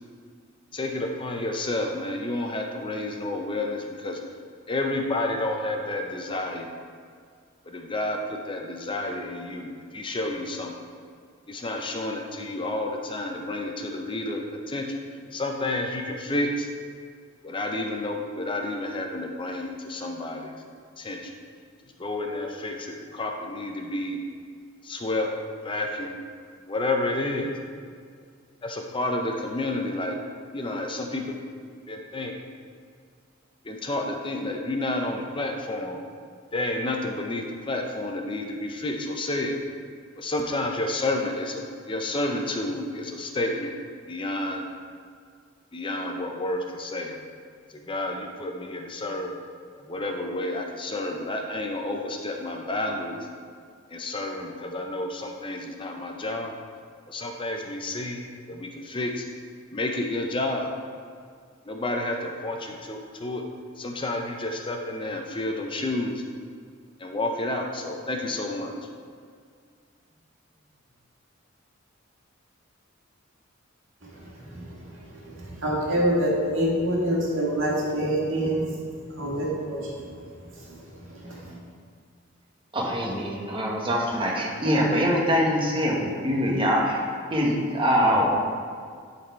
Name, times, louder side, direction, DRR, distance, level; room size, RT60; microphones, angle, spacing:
voice 1, 0.7-4.2 4.7-6.7 7.7-10.7 11.5-15.0 15.3-16.7 17.4-20.5 21.0-21.3 22.0-24.2 24.8-25.3 25.6-26.2 26.7-27.5 28.6-30.2 30.5-31.3 31.9-32.4 33.6-36.0 36.5-39.6 40.2-43.7 44.1-44.7 45.7-47.1 47.7-49.3 49.8-53.2 53.9-56.5 57.1-58.2 58.5-59.3 59.7-60.7 61.7-63.4 63.8-66.2 67.0-68.7, left 2 dB, 25° left, 2 dB, 0.6 m, -30 dB
voice 2, 75.6-78.7 79.2-79.9 81.2-81.6, equal, 70° right, -4 dB, 1.9 m, -25 dB
voice 3, 82.7-87.0 87.3-88.3, equal, 25° right, -3 dB, 1.4 m, -23 dB
10.5 x 4.2 x 4.4 m, 2.1 s
head